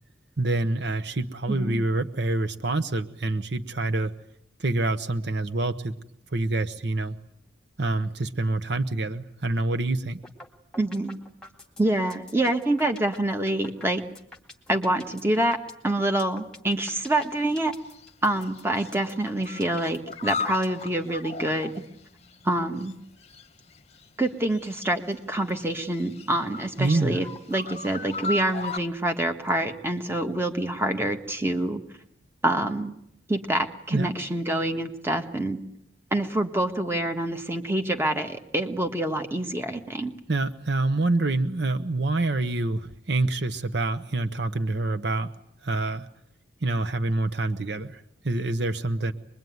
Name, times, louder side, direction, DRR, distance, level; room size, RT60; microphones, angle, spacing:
voice 1, 0.4-4.1 4.6-5.9 6.3-7.2 7.8-10.2 26.8-27.3 33.9-34.1 40.3-45.3 45.6-46.1 46.6-49.1, right 2 dB, 60° right, 9 dB, 1.0 m, -26 dB
voice 2, 1.5-1.8 10.8-11.2 11.8-14.0 14.7-15.6 15.8-17.7 18.2-21.7 22.4-23.0 24.2-31.8 32.4-32.9 33.3-35.6 36.1-40.1, right 1 dB, 10° right, 5 dB, 1.6 m, -26 dB
sound 1, 10.2-10.5 10.7-20.8, left 2 dB, 5° left, 2.2 m, -46 dB
sound 2, 17.1-17.6 17.9-18.9 19.2-22.5 22.8-22.9 23.2-25.1 25.5-28.8, left 4 dB, 35° left, 1.0 m, -37 dB
24.5 x 22.0 x 9.4 m, 0.75 s
head